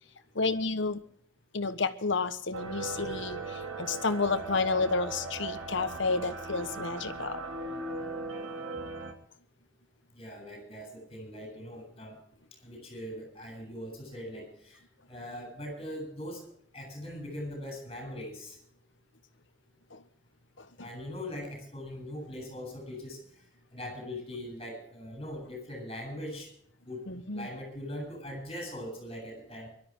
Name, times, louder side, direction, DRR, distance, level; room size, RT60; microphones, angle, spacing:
voice 1, 0.3-1.0 1.5-7.4 19.9-20.0 20.6-20.9 27.1-27.5, left 4 dB, 60° left, 10 dB, 1.3 m, -31 dB
sound 1, 2.5-9.1, right 3 dB, 80° right, 2.6 m, -38 dB
voice 2, 10.1-12.2 12.6-14.8 15.1-16.5 16.7-18.6 20.8-23.2 23.7-26.5 26.9-27.0 27.3-29.7, left 1 dB, 25° left, 3 dB, 8.0 m, -41 dB
24.0 x 12.5 x 3.7 m, 0.67 s
head